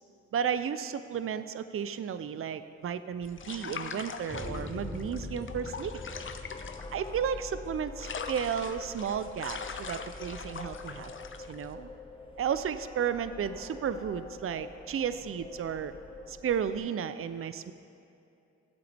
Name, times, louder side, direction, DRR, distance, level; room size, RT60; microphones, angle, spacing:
voice 1, 0.3-5.9 6.9-11.1 11.5-11.9 12.4-15.9 16.3-17.7, right 8 dB, 45° right, 12 dB, 0.5 m, -33 dB
sound 1, 3.2-11.7, left 5 dB, 40° left, 0.7 m, -42 dB
sound 2, 4.3-16.8, left 3 dB, 20° left, 0.9 m, -44 dB
15.5 x 7.9 x 3.4 m, 2.7 s
cardioid pair, 55°, 30 cm